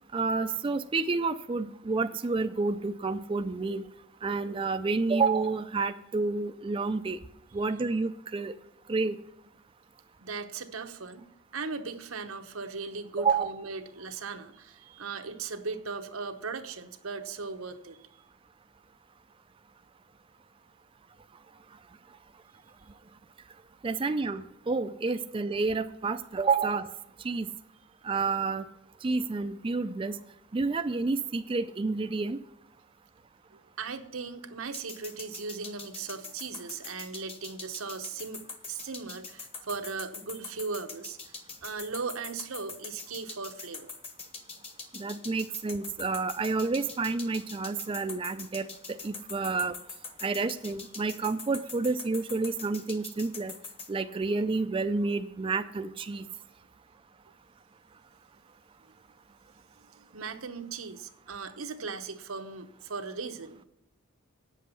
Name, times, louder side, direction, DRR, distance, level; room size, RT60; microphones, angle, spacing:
voice 1, 0.1-3.8 4.2-7.2 7.5-8.5 8.9-9.2 13.2-13.5 23.8-26.9 27.2-27.5 28.0-28.6 29.0-30.2 30.5-32.4 44.9-48.7 49.0-49.8 50.2-53.5 53.9-56.3, right 4 dB, 25° right, 8 dB, 0.4 m, -29 dB
voice 2, 10.2-18.2 33.8-43.9 60.1-63.6, right 4 dB, 90° right, 7 dB, 1.0 m, -38 dB
sound 1, 34.7-53.9, left 4 dB, 30° left, 1.3 m, -43 dB
8.9 x 7.5 x 6.8 m, 0.84 s
head